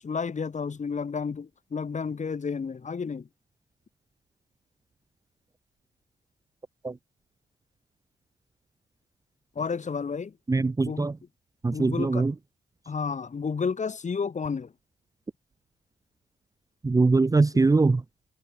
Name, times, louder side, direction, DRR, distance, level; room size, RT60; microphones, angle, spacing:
voice 1, 0.0-3.3 9.6-10.3 10.9-11.1 11.7-12.3 12.9-14.7, left 5 dB, 35° left, 3.9 m, -31 dB
voice 2, 10.5-11.2 11.6-12.3 16.8-18.0, right 3 dB, 15° right, 0.8 m, -22 dB
cardioid pair, 90°, 20 cm